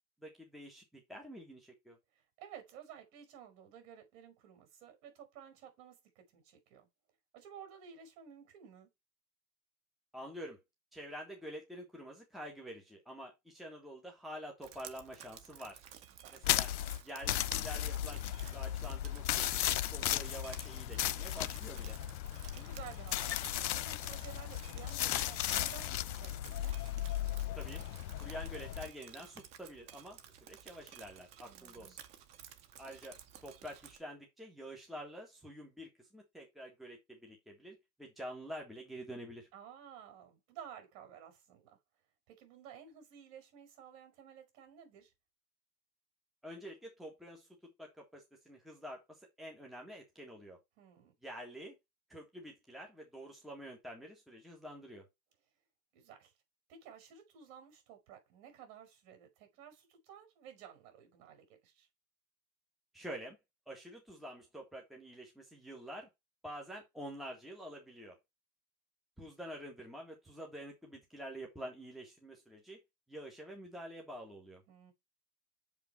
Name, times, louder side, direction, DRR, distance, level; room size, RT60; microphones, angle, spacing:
voice 1, 0.2-2.0 10.1-10.6 10.9-15.8 16.3-16.7 17.0-22.0 27.6-27.8 28.2-32.0 32.8-39.5 46.4-47.5 47.8-50.6 51.2-51.8 52.1-55.1 62.9-63.4 63.7-66.1 66.4-68.2 69.2-72.8 73.1-74.6, equal, ahead, 1.8 m, -48 dB
voice 2, 2.2-6.9 7.3-8.9 16.2-16.6 20.0-20.4 22.5-23.4 23.7-26.7 31.4-32.0 39.5-41.8 42.3-45.1 50.8-51.1 55.9-56.3 56.7-61.9 74.7-74.9, right 8 dB, 50° right, 5.5 m, -54 dB
Drip, 14.6-34.0, right 10 dB, 15° right, 0.4 m, -55 dB
sound 1, 16.4-28.9, left 12 dB, 85° left, 0.8 m, -36 dB
7.5 x 5.3 x 4.4 m
hypercardioid pair, 135°, 49 cm